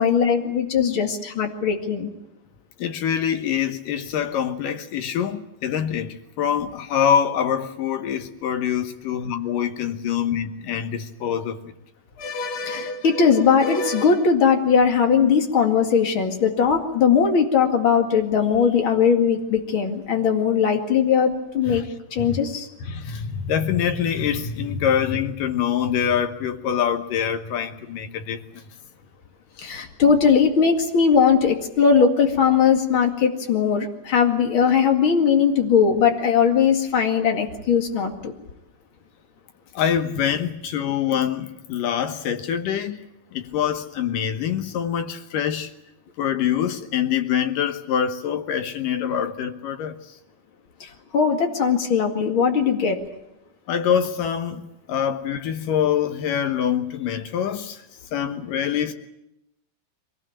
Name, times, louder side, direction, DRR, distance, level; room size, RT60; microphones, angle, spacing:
voice 1, 0.0-2.1 12.2-21.8 22.1-22.7 29.6-38.3 51.1-53.0, left 6 dB, 40° left, 2.2 m, -19 dB
voice 2, 2.8-11.7 21.7-22.5 22.8-28.6 39.7-43.1 43.3-45.7 46.2-50.2 53.7-57.8 58.1-58.9, left 8 dB, 70° left, 2.3 m, -25 dB
23.5 x 19.0 x 8.9 m
omnidirectional pair, 4.9 m